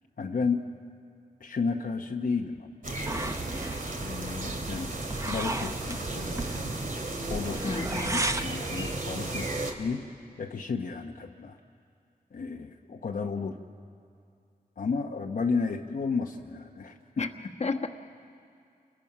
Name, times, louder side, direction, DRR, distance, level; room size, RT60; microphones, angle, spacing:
voice 1, 0.2-0.8 1.4-3.3 4.0-4.9 5.3-6.4 7.3-7.7 8.4-9.5 9.8-10.1 10.4-11.6 12.3-13.6 14.8-17.3, left 4 dB, 60° left, 2 dB, 0.9 m, -32 dB
sound 1, 2.8-9.7, right 2 dB, 60° right, 2.3 m, -34 dB
sound 2, 3.1-8.5, right 2 dB, 20° right, 0.8 m, -35 dB
voice 2, 7.6-8.3 17.2-17.3 17.6-17.9, left 4 dB, 45° left, 5 dB, 1.2 m, -31 dB
29.0 x 22.0 x 5.9 m, 2.4 s
wide cardioid pair, 90°, 16 cm